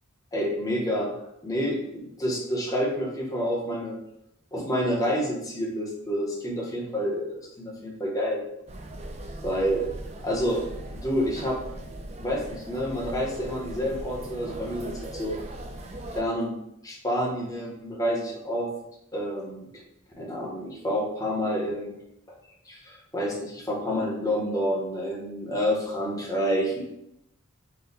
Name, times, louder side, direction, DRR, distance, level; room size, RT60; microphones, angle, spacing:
voice 1, 0.3-1.1 1.4-4.0 4.5-8.5 9.4-9.9 10.2-10.6 10.9-11.6 12.2-15.4 16.1-16.5 16.8-18.7 19.1-19.8 20.2-22.0 22.3-22.4 22.7-26.8, equal, 15° left, -3 dB, 0.8 m, -28 dB
sound 1, 8.7-16.2, right 1 dB, 30° right, 0.4 m, -39 dB
4.1 x 2.2 x 3.9 m, 0.80 s
head